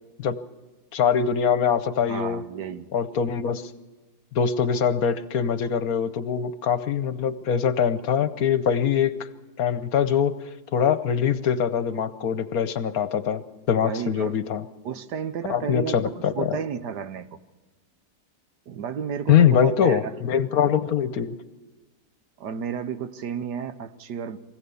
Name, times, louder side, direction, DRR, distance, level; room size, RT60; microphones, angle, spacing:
voice 1, 0.9-2.4 2.9-3.7 4.3-9.2 9.6-10.4 10.7-14.6 15.5-16.6 19.3-21.4, left 8 dB, 65° left, 13 dB, 1.2 m, -23 dB
voice 2, 2.1-2.9 13.8-14.4 14.8-17.3 18.7-20.2 20.6-20.7 22.4-24.4, right 7 dB, 75° right, 11 dB, 1.6 m, -32 dB
24.0 x 16.5 x 7.0 m, 1.2 s
omnidirectional pair, 1.8 m